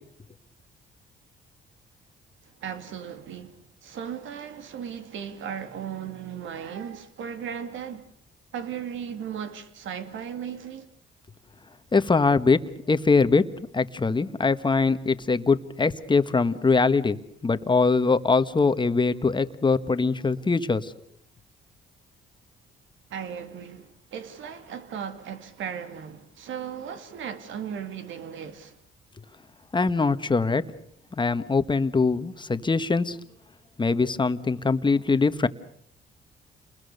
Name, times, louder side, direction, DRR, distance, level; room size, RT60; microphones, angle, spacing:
voice 1, 2.6-8.1 8.5-10.9 23.1-28.8, right 8 dB, 75° right, 2.5 m, -36 dB
voice 2, 11.9-12.6 12.9-13.4 13.7-17.2 17.4-20.9 29.7-30.6 31.1-33.2 33.8-35.5, left 4 dB, 25° left, 1.4 m, -22 dB
29.5 x 21.0 x 6.8 m
cardioid pair, 90°, 20 cm